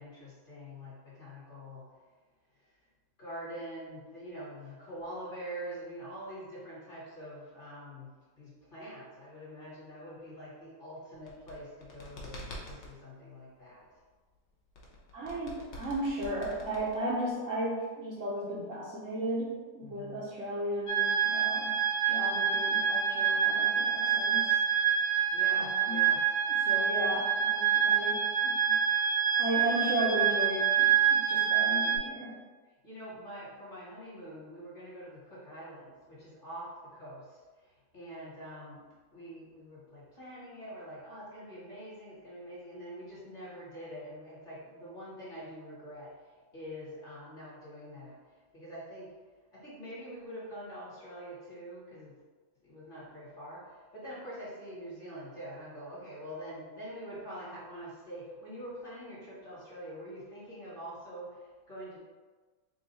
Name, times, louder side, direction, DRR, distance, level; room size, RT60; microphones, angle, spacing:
voice 1, 0.0-1.8 3.2-8.1 8.4-13.9 19.8-20.3 25.3-26.2 27.9-28.0 32.8-38.8 39.1-46.1 46.5-48.2 48.5-49.1 49.5-52.2 52.6-62.0, equal, 35° left, -8 dB, 1.3 m, -45 dB
sound 1, 11.1-12.9 14.7-17.3, left 1 dB, 55° left, 0.9 m, -45 dB
voice 2, 15.1-21.7 22.0-24.6 25.5-26.0 26.7-28.7 29.4-32.3, right 1 dB, 60° right, -6 dB, 0.9 m, -35 dB
sound 2, 20.9-32.0, right 8 dB, 70° left, 1.2 m, -27 dB
3.7 x 2.4 x 4.1 m, 1.4 s
omnidirectional pair, 1.8 m